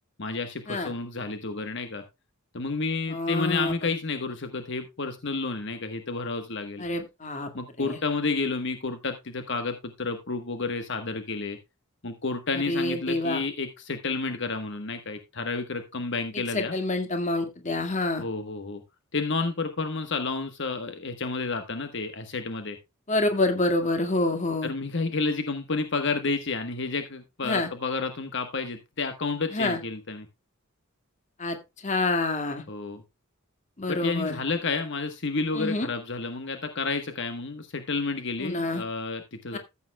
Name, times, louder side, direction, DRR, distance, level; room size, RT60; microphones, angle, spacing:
voice 1, 0.2-2.0 2.5-6.8 7.5-11.6 12.0-16.7 18.2-18.8 19.1-22.8 24.6-30.3 32.7-33.0 33.9-39.6, left 3 dB, 55° left, 7 dB, 1.3 m, -30 dB
voice 2, 3.1-3.7 6.8-7.5 7.8-8.0 12.5-13.4 16.5-18.2 23.1-24.7 27.4-27.7 29.5-29.8 31.4-31.6 31.8-32.6 33.8-34.4 35.5-35.9 38.4-38.8 39.5-39.6, left 2 dB, 35° left, 7 dB, 1.9 m, -27 dB
14.5 x 8.4 x 2.2 m, 0.24 s
head